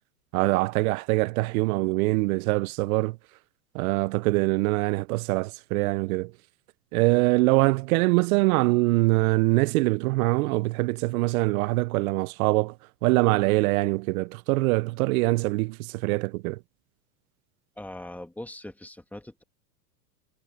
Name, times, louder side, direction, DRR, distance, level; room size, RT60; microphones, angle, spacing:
voice 1, 0.3-3.2 3.7-6.3 6.9-12.8 13.0-16.6, right 22 dB, 60° right, 0.6 m, -23 dB
voice 2, 17.8-19.4, left 1 dB, 5° left, 1.6 m, -41 dB
supercardioid pair, 140°, 49 cm